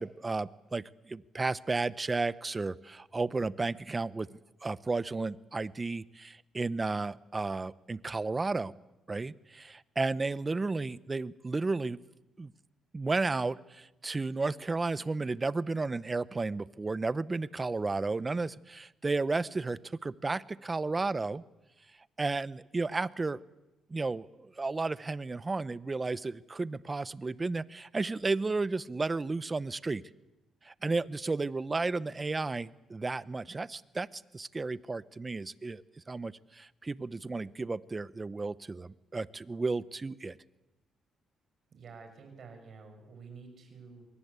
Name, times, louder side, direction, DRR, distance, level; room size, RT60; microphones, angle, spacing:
voice 1, 0.0-8.7 9.1-12.0 12.4-12.5 12.9-21.4 22.2-23.4 23.9-30.0 30.6-40.4, right 3 dB, 25° right, 17 dB, 0.9 m, -33 dB
voice 2, 41.7-44.1, right 5 dB, 55° right, 6 dB, 6.4 m, -50 dB
25.5 x 23.0 x 8.3 m, 0.97 s
cardioid pair, 90°, 0 cm